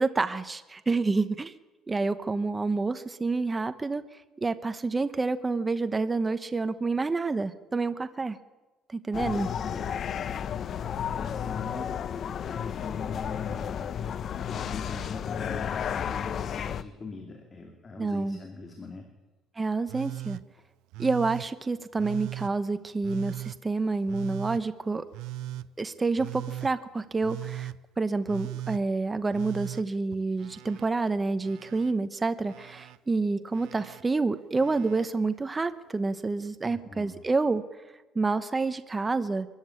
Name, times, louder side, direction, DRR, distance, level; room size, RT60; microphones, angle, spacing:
voice 1, 0.0-1.5 1.9-4.0 4.4-8.4 8.9-9.5 18.0-18.4 19.6-20.4 21.0-25.1 25.8-37.6 38.1-39.5, right 3 dB, 15° right, 11 dB, 0.9 m, -28 dB
sound 1, 9.1-16.8, left 8 dB, 45° left, 0.8 m, -32 dB
voice 2, 9.5-9.9 10.4-14.0 14.4-19.1 36.6-37.2, left 4 dB, 25° left, 2 dB, 2.7 m, -42 dB
Telephone, 19.9-20.4 20.9-21.5 22.0-22.5 23.0-23.6 24.1-24.6 25.1-25.7 26.2-26.7 27.2-27.8 28.3-28.8 29.3-30.9 31.2-31.9 32.5-33.0 33.5-34.0 34.6-35.1 36.3-36.4, right 14 dB, 90° right, 0.6 m, -39 dB
23.5 x 14.0 x 9.8 m, 1.2 s
cardioid pair, 135°, 0 cm